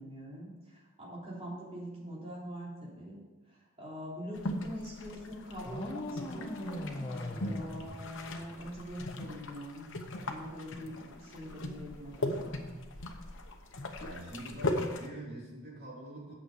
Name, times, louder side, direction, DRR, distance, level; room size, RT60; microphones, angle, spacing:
voice 1, 0.0-3.2 3.5-6.9 7.4-9.9 10.2-12.6, equal, 30° right, -5 dB, 3.3 m, -44 dB
sound 1, 4.3-15.1, left 2 dB, 60° left, 1.0 m, -39 dB
sound 2, 5.6-8.8, left 1 dB, 25° left, 0.9 m, -40 dB
voice 2, 14.0-16.3, right 1 dB, 50° right, -4 dB, 3.3 m, -44 dB
8.9 x 6.4 x 6.7 m, 1.2 s
head